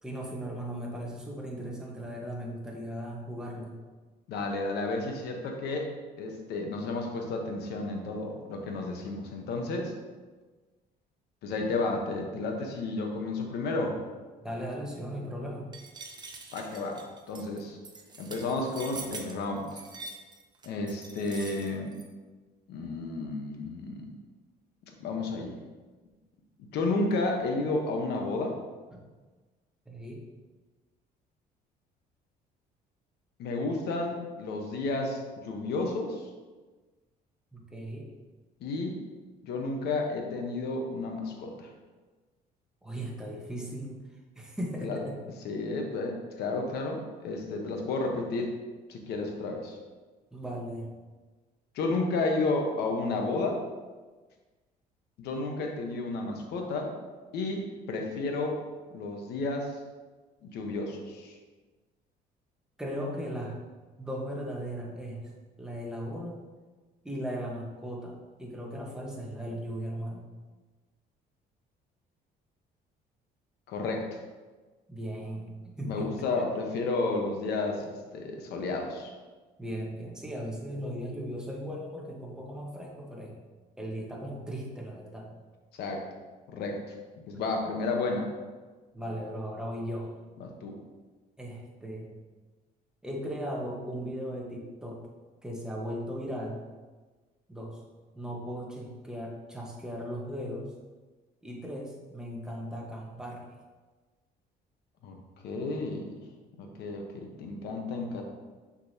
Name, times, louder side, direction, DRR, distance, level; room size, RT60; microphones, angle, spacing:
voice 1, 0.0-3.8 14.4-15.7 28.9-29.0 29.9-30.2 37.5-38.1 42.8-44.0 44.4-45.1 45.5-45.6 50.3-50.9 62.8-63.6 64.0-65.2 65.6-66.4 67.0-70.2 74.9-76.5 79.6-83.3 83.8-85.3 88.9-90.1 91.4-92.1 93.0-95.0 95.4-96.6 97.5-97.8 98.1-100.7 101.4-103.5, equal, 5° right, -2 dB, 1.2 m, -37 dB
voice 2, 4.3-5.9 6.2-9.9 11.4-14.0 16.5-17.0 17.3-17.8 18.2-19.8 20.6-21.9 22.7-24.1 25.0-25.5 26.7-28.6 33.4-36.2 38.6-39.0 39.4-41.7 44.8-45.0 45.4-48.5 48.9-49.8 51.7-53.6 55.2-56.9 57.3-58.6 58.9-59.7 60.4-61.3 73.7-74.2 75.8-79.1 85.8-86.0 86.5-86.9 87.3-88.3 90.4-90.8 105.0-105.2 105.4-106.1 106.6-108.2, left 3 dB, 75° left, 2 dB, 1.0 m, -32 dB
sound 1, 15.7-22.1, right 3 dB, 25° right, 0.7 m, -44 dB
6.6 x 5.3 x 2.8 m, 1.3 s
cardioid pair, 110°, 17 cm